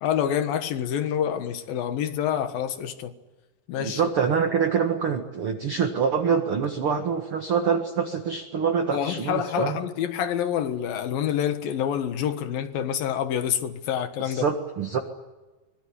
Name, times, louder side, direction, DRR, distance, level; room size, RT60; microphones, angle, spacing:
voice 1, 0.0-3.1 3.7-4.1 8.9-14.4, left 9 dB, 70° left, 3.2 m, -27 dB
voice 2, 3.8-9.8 14.2-15.0, right 6 dB, 45° right, 2.0 m, -25 dB
24.5 x 21.5 x 10.0 m
omnidirectional pair, 4.4 m